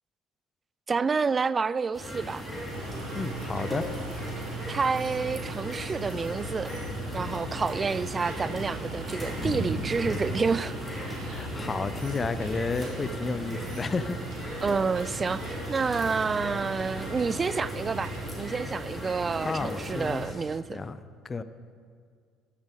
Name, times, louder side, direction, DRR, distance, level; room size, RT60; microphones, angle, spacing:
voice 1, 0.9-2.4 4.7-6.8 7.1-10.7 14.6-18.1 18.4-20.8, right 5 dB, 30° right, 0.3 m, -29 dB
sound 1, 1.9-20.3, equal, 5° right, 3.4 m, -36 dB
sound 2, 2.7-6.5 7.2-7.3 8.2-10.7, equal, 90° left, 1.9 m, -48 dB
sound 3, 2.7-18.3, right 3 dB, 70° right, 1.9 m, -40 dB
voice 2, 3.2-3.8 11.3-14.2 14.5-14.6 19.4-20.2 20.7-21.4, left 4 dB, 30° left, 0.6 m, -32 dB
13.5 x 7.2 x 5.0 m
hypercardioid pair, 60°, 0 cm